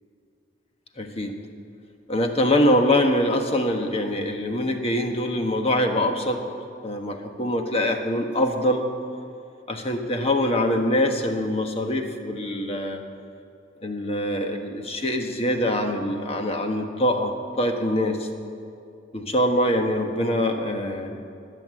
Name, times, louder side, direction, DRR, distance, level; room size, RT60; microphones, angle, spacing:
voice 1, 1.0-1.3 2.1-6.5 6.8-8.8 9.7-13.0 13.8-18.3 19.1-21.2, left 1 dB, 30° left, 4 dB, 1.3 m, -24 dB
20.0 x 8.1 x 7.6 m, 2.6 s
head